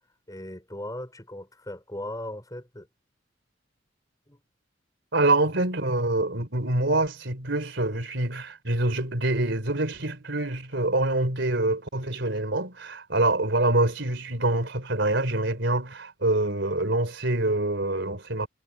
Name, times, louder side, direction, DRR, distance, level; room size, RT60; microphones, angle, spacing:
voice 1, 0.3-2.9 4.3-4.4, left 1 dB, 20° left, 5.7 m, -38 dB
voice 2, 5.1-18.5, right 2 dB, 65° right, 4.0 m, -25 dB
head